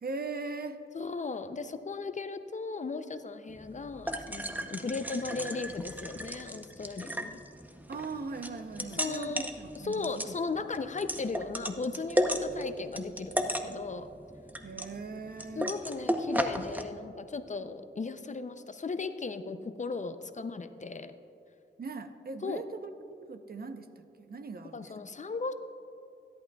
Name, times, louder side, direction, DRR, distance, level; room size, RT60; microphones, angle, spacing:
voice 1, 0.0-0.8 7.9-10.2 14.6-15.7 21.8-22.9 23.3-24.9, right 4 dB, 50° right, 8 dB, 0.7 m, -40 dB
voice 2, 0.9-7.4 8.8-9.5 9.8-14.1 15.6-21.1 22.4-22.7 24.7-25.5, left 4 dB, 40° left, 10 dB, 0.5 m, -36 dB
sound 1, 3.5-16.8, equal, 10° right, 0.7 m, -35 dB
16.0 x 11.0 x 2.3 m, 2.6 s
cardioid pair, 70°, 19 cm